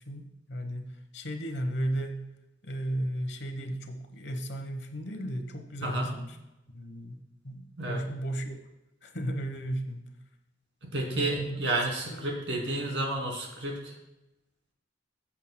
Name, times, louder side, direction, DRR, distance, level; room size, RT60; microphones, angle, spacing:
voice 1, 0.1-2.2 2.6-6.4 6.7-7.2 7.4-8.6 9.0-10.1 11.1-11.7 12.1-12.3 12.7-12.9, right 1 dB, 65° left, 6 dB, 1.1 m, -35 dB
voice 2, 5.8-6.1 7.8-8.0 10.8-13.9, right 2 dB, 85° right, 0 dB, 2.6 m, -31 dB
14.5 x 7.3 x 2.2 m, 0.93 s
head